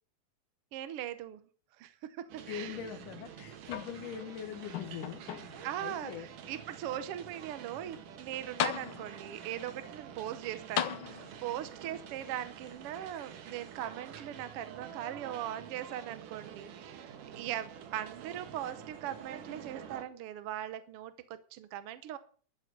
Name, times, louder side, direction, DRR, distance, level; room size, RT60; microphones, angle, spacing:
voice 1, 0.7-1.4 1.8-2.8 5.6-22.2, right 11 dB, 70° right, 12 dB, 1.4 m, -40 dB
sound 1, 2.3-20.0, right 8 dB, 90° right, 3.0 m, -48 dB
voice 2, 2.5-5.2 5.5-6.3, left 9 dB, 90° left, 6 dB, 2.7 m, -42 dB
sound 2, 3.7-4.3 4.7-5.7 6.4-6.5 8.1-8.2 8.6-9.4 10.7-11.6 12.7-12.8, left 9 dB, 70° left, 1.3 m, -36 dB
12.0 x 8.2 x 7.9 m, 0.43 s
omnidirectional pair, 3.6 m